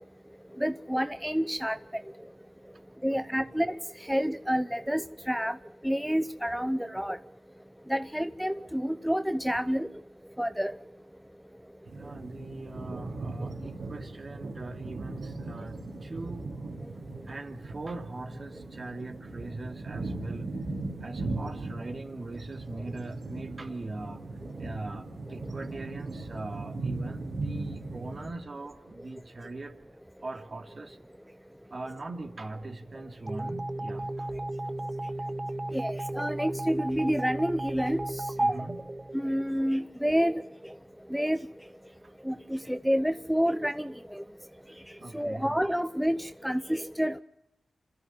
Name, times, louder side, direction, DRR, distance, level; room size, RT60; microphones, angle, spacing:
voice 1, 0.5-2.3 3.0-5.6 5.8-7.2 7.9-9.9 10.4-10.8 25.4-25.5 35.7-38.3 39.1-40.8 41.1-41.6 42.2-44.2 44.9-47.2, equal, ahead, 10 dB, 0.8 m, -29 dB
voice 2, 3.1-3.5 11.9-16.5 17.2-20.5 21.0-24.2 24.6-29.8 30.2-31.0 31.7-34.3 38.4-38.9 42.0-42.1 45.0-45.6, right 2 dB, 50° right, 4 dB, 2.8 m, -41 dB
sound 1, 11.9-28.3, right 2 dB, 70° right, 3.8 m, -38 dB
sound 2, 33.3-39.8, right 1 dB, 30° right, 1.1 m, -34 dB
26.5 x 14.0 x 9.3 m, 0.90 s
cardioid pair, 50°, 0 cm